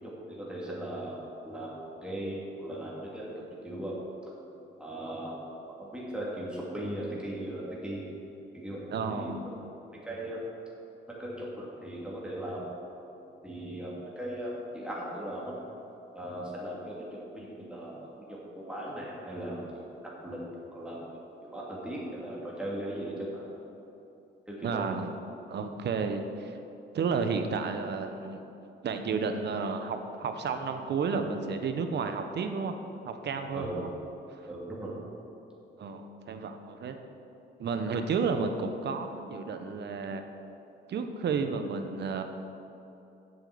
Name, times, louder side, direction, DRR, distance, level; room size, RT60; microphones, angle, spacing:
voice 1, 0.0-1.7 2.0-3.3 3.6-4.0 4.8-5.4 5.8-8.0 8.5-9.3 10.0-10.4 11.2-12.6 13.4-15.5 16.1-19.8 20.2-20.4 20.7-21.0 21.5-23.4 24.5-24.8 33.5-33.7 34.5-34.9, right 1 dB, 5° right, -6 dB, 2.6 m, -38 dB
voice 2, 8.9-9.4 24.6-25.1 25.5-26.6 26.9-28.4 28.8-32.7 33.1-33.9 35.8-37.0 37.6-40.2 40.9-42.2, right 5 dB, 60° right, 7 dB, 1.0 m, -32 dB
8.1 x 7.7 x 6.9 m, 2.9 s
cardioid pair, 90°, 20 cm